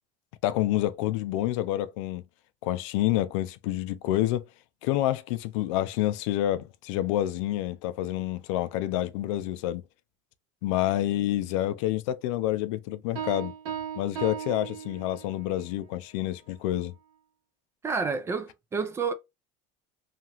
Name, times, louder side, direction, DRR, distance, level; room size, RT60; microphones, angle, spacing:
voice 1, 0.4-2.2 2.6-4.5 4.8-9.8 10.6-13.5 14.0-16.9, left 14 dB, 80° left, 0.4 m, -28 dB
Piano, 13.2-15.5, right 9 dB, 75° right, 1.2 m, -36 dB
voice 2, 17.8-19.1, right 5 dB, 15° right, 0.3 m, -29 dB
2.9 x 2.4 x 2.8 m
cardioid pair, 150°, 16 cm